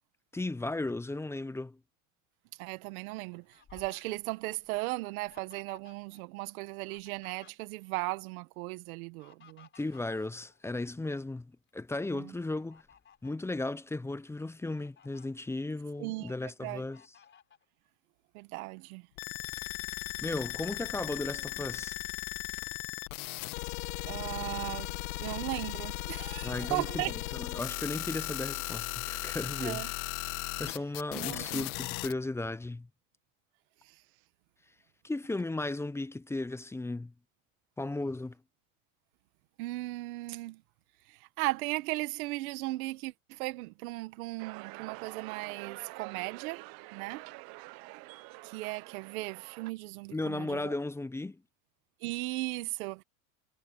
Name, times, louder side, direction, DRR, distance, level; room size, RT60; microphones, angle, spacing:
voice 1, 0.3-1.8 9.7-12.8 13.2-17.0 20.2-22.0 26.4-29.9 30.6-32.9 35.0-37.1 37.8-38.3 50.1-51.4, left 2 dB, 5° left, 0.6 m, -35 dB
voice 2, 2.6-9.7 12.1-12.3 16.0-16.3 16.6-16.8 18.3-19.0 24.1-24.9 25.2-27.1 29.6-29.9 30.6-30.7 31.1-31.7 39.6-40.6 41.1-46.6 46.9-47.2 48.4-50.7 52.0-53.0, right 21 dB, 75° right, 1.8 m, -37 dB
Fowl, 2.9-6.2 6.5-8.0 8.9-11.0 11.5-11.7 12.3-13.4 14.0-14.1 14.5-15.3 15.8-16.5 16.9-17.6, left 7 dB, 25° left, 3.6 m, -59 dB
sound 1, 19.2-32.1, left 22 dB, 75° left, 2.2 m, -37 dB
sound 2, 44.4-49.7, right 24 dB, 55° right, 0.8 m, -46 dB
supercardioid pair, 125°, 43 cm